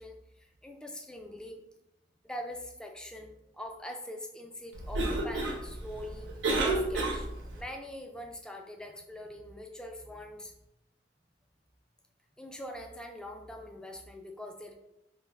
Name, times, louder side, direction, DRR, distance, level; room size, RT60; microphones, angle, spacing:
voice 1, 0.0-1.6 2.2-6.3 6.6-7.3 7.6-10.5 12.4-14.7, left 1 dB, 5° left, 3 dB, 0.3 m, -43 dB
Cough, 4.7-7.6, right 2 dB, 90° right, 0.7 m, -31 dB
3.2 x 2.4 x 3.4 m, 0.86 s
head